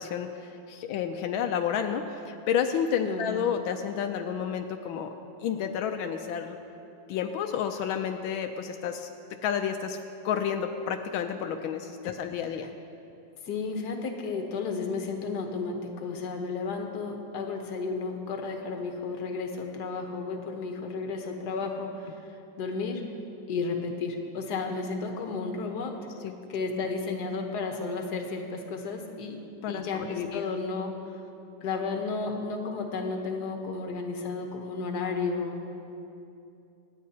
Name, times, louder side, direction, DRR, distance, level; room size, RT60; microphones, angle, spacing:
voice 1, 0.0-5.1 5.4-6.6 7.1-9.1 9.4-10.0 10.2-12.7 26.2-26.3 29.6-30.4, left 8 dB, 85° left, 6 dB, 1.4 m, -30 dB
voice 2, 13.4-22.1 22.6-23.1 23.5-26.0 26.5-29.4 29.7-31.2 31.6-35.7, left 4 dB, 60° left, 3 dB, 1.6 m, -33 dB
26.0 x 9.4 x 2.8 m, 2.7 s
omnidirectional pair, 2.2 m